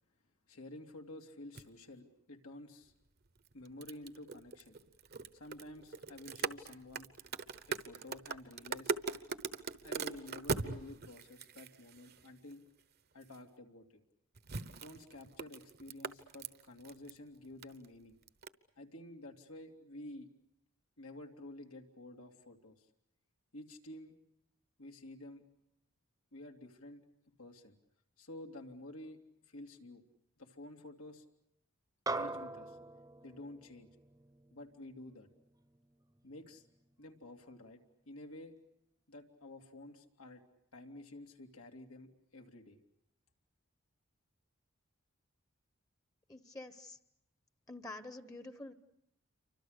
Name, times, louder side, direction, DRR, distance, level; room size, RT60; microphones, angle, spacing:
voice 1, 0.5-2.9 3.5-4.8 5.3-7.1 7.7-9.0 9.8-12.6 13.1-13.8 14.7-18.2 18.8-20.3 21.0-22.9 23.5-24.1 24.8-25.4 26.3-27.0 27.4-27.8 28.2-29.2 29.5-30.0 30.4-31.3 32.1-32.8 33.2-33.9 34.5-35.3 36.2-36.7 37.0-37.8 38.1-38.5 39.1-40.4 40.7-42.8, left 1 dB, 90° left, 3 dB, 2.8 m, -51 dB
sound 1, 1.6-1.7 3.4-12.5 13.2-13.4 14.4-17.2 17.4-17.9 18.3-18.5, right 4 dB, 50° right, 1.0 m, -41 dB
sound 2, 32.1-36.7, right 2 dB, 15° right, 0.9 m, -43 dB
voice 2, 46.3-47.0 47.7-48.7, left 2 dB, 15° left, 11 dB, 1.0 m, -47 dB
29.0 x 25.0 x 6.7 m, 0.80 s
head